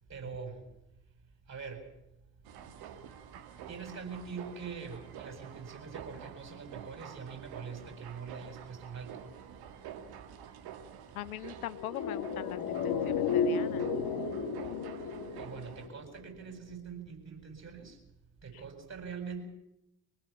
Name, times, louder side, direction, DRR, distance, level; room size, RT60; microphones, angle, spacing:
voice 1, 0.1-0.7 1.5-1.9 3.7-9.2 15.4-18.0 18.4-19.4, right 5 dB, 40° right, 4 dB, 7.9 m, -43 dB
sound 1, 2.4-15.9, right 8 dB, 60° right, 1.9 m, -48 dB
voice 2, 11.1-13.9, left 14 dB, 80° left, 17 dB, 0.7 m, -41 dB
sound 2, 11.7-16.3 16.5-16.6, left 6 dB, 55° left, 2.8 m, -33 dB
25.0 x 19.0 x 7.3 m, 0.87 s
figure-of-eight pair, 55°, 43 cm